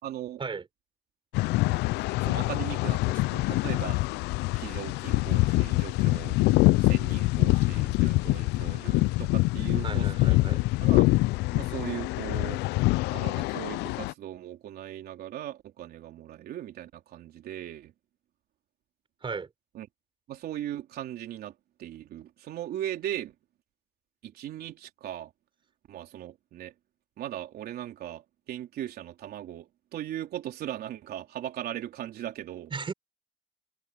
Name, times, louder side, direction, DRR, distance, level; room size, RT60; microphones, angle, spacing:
voice 1, 0.0-0.4 2.2-4.0 4.6-6.4 6.8-10.4 10.8-11.0 11.5-12.6 13.1-17.9 19.7-19.9 20.3-21.5 21.8-23.3 24.2-25.3 25.9-26.7 27.2-28.2 28.5-32.7, right 12 dB, 65° right, 3.7 m, -38 dB
sound 1, 1.3-14.1, left 20 dB, 90° left, 0.5 m, -25 dB
voice 2, 9.8-10.6 19.2-19.5 32.7-32.9, right 5 dB, 30° right, 4.3 m, -35 dB
cardioid pair, 110°, 17 cm